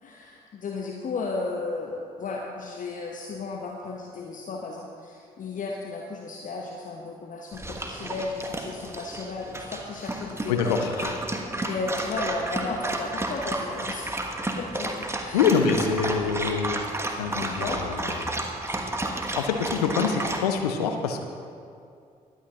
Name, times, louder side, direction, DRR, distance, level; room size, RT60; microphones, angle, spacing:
voice 1, 0.0-10.9 11.7-14.1 14.6-15.5 17.4-17.8 20.2-20.4, left 3 dB, 40° left, 0 dB, 1.1 m, -34 dB
Dog, 7.5-20.4, right 1 dB, 15° right, 1.4 m, -32 dB
voice 2, 10.5-11.1 15.3-16.8 17.1-18.3 19.4-21.2, left 6 dB, 75° left, 5 dB, 0.8 m, -25 dB
22.0 x 8.8 x 2.9 m, 2.4 s
figure-of-eight pair, 40°, 20 cm